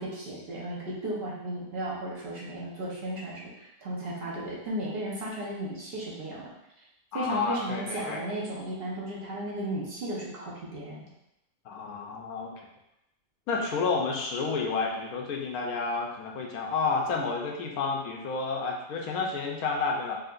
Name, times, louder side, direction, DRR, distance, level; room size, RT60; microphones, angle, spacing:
voice 1, 0.0-6.5 7.1-11.0, right 1 dB, 45° right, -5 dB, 1.1 m, -35 dB
voice 2, 7.1-8.2 11.7-12.5 13.5-20.2, left 4 dB, 85° left, 0 dB, 1.1 m, -30 dB
4.8 x 2.8 x 2.5 m, 0.86 s
omnidirectional pair, 1.5 m